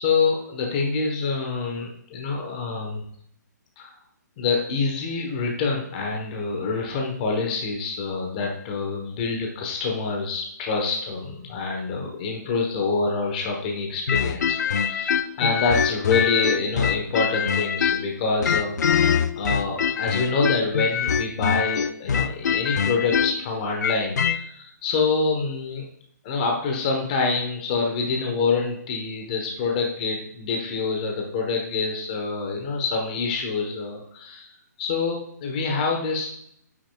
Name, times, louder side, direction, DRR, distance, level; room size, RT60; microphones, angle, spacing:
voice 1, 0.0-3.0 3.8-3.9 4.4-18.7 19.4-25.9 26.2-34.5 34.8-36.3, left 4 dB, 25° left, 1 dB, 1.1 m, -26 dB
sound 1, 14.1-18.1 18.4-24.4, left 7 dB, 65° left, 0.5 m, -24 dB
8.4 x 6.9 x 2.3 m, 0.69 s
hypercardioid pair, 170°, 10 cm